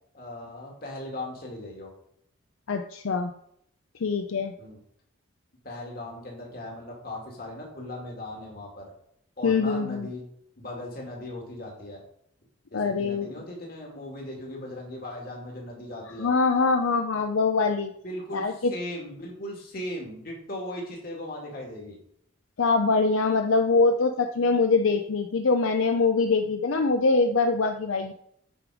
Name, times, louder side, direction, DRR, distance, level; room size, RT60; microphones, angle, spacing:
voice 1, 0.1-1.9 4.6-4.8 5.6-8.8 9.4-10.2 10.6-12.0 12.7-16.3 18.0-22.0, left 1 dB, 45° left, -1 dB, 2.5 m, -38 dB
voice 2, 2.7-3.3 4.0-4.5 9.4-10.1 12.7-13.3 16.2-17.9 18.3-18.7 22.6-28.1, left 4 dB, 75° left, 5 dB, 0.6 m, -23 dB
8.9 x 4.9 x 4.9 m, 0.71 s
head